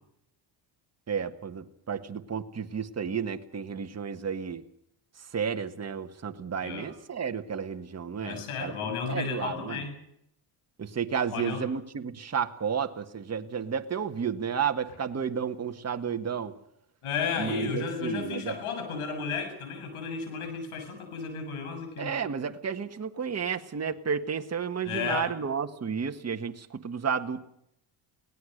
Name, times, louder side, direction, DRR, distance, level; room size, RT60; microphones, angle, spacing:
voice 1, 1.1-4.6 5.3-9.8 10.8-16.5 17.4-18.5 22.0-27.4, right 7 dB, 30° right, 6 dB, 1.7 m, -32 dB
voice 2, 8.2-10.0 11.3-11.7 17.0-22.1 24.8-25.3, left 5 dB, 85° left, 6 dB, 7.5 m, -33 dB
23.5 x 18.0 x 6.7 m, 0.74 s
cardioid pair, 95°, 49 cm